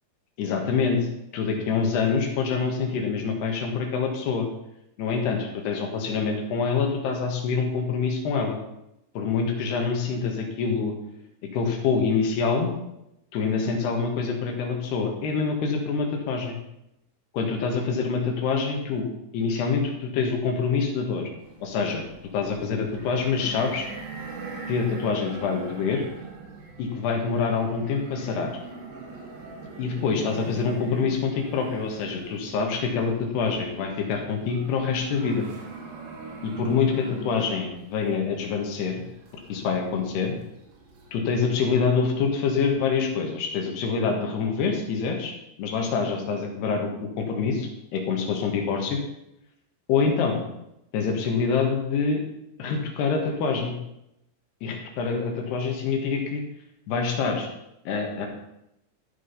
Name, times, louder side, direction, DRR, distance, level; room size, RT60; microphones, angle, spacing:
voice 1, 0.4-4.5 5.0-8.6 9.2-10.9 11.5-12.7 13.3-16.6 17.3-19.1 19.3-21.3 21.6-22.0 22.3-23.9 24.7-26.1 26.8-28.5 29.8-35.5 36.4-39.0 39.5-40.3 41.1-45.3 45.6-49.0 49.9-50.4 50.9-52.2 52.6-53.8 54.6-56.4 56.9-57.5 57.9-58.3, left 5 dB, 70° left, 3 dB, 3.4 m, -26 dB
sound 1, 21.4-41.2, right 4 dB, 55° right, 3.7 m, -42 dB
13.0 x 7.4 x 5.6 m, 0.82 s
omnidirectional pair, 5.4 m